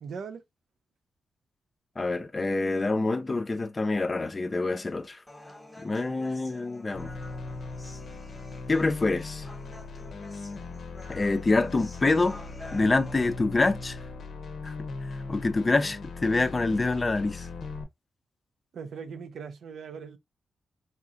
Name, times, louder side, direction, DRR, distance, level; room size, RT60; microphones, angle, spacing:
voice 1, 0.0-0.4 18.7-20.2, right 6 dB, 75° right, 0.5 m, -39 dB
voice 2, 2.0-5.2 5.8-7.1 8.7-9.4 11.1-12.4 12.7-14.0 14.6-14.7 15.3-17.5, left 3 dB, 25° left, 0.5 m, -26 dB
Human voice, 5.3-13.3, left 1 dB, 10° left, 0.9 m, -49 dB
sound 1, 6.9-17.8, left 3 dB, 65° left, 0.6 m, -39 dB
4.1 x 2.7 x 2.4 m
wide cardioid pair, 120°, 0 cm